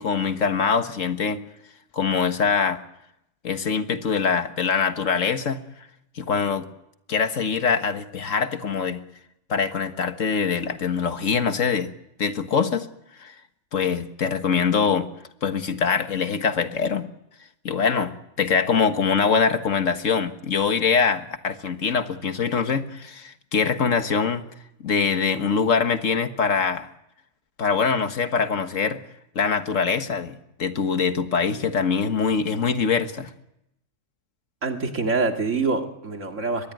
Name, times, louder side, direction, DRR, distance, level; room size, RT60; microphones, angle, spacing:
voice 1, 0.0-1.4 1.9-2.8 3.4-5.6 6.2-6.7 7.1-9.0 9.5-11.9 12.2-12.9 13.2-13.4 13.7-15.1 15.4-17.1 17.7-18.1 18.4-24.4 24.8-26.9 27.6-29.0 29.4-33.3, left 5 dB, 85° left, 8 dB, 1.8 m, -23 dB
voice 2, 34.6-36.7, right 3 dB, 75° right, 4 dB, 2.7 m, -25 dB
23.0 x 20.0 x 9.3 m, 0.82 s
omnidirectional pair, 1.3 m